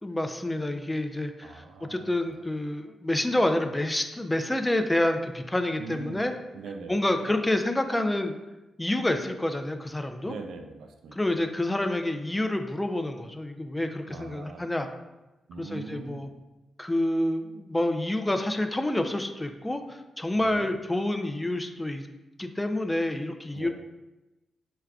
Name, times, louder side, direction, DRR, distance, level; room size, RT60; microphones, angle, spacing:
voice 1, 0.0-6.3 6.9-8.3 8.8-10.3 11.1-14.9 15.6-16.3 16.8-22.1 22.4-23.7, left 1 dB, 15° left, 7 dB, 0.4 m, -28 dB
voice 2, 1.4-2.4 5.8-6.2 6.5-7.3 10.2-11.5 14.1-14.6 15.5-16.3 20.4-20.7 23.5-23.7, right 4 dB, 80° right, 5 dB, 0.3 m, -42 dB
4.7 x 2.2 x 2.3 m, 1.0 s
supercardioid pair, 50°, 0 cm